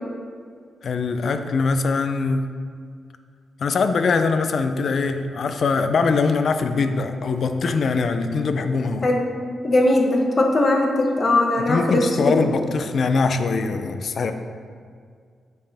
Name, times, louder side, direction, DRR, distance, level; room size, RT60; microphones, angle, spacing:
voice 1, 0.8-2.5 3.6-9.1 11.7-14.3, left 4 dB, 60° left, 8 dB, 0.4 m, -22 dB
voice 2, 9.6-12.4, left 2 dB, 40° left, 1 dB, 1.0 m, -19 dB
7.7 x 5.4 x 3.4 m, 2.1 s
cardioid pair, 100°, 0 cm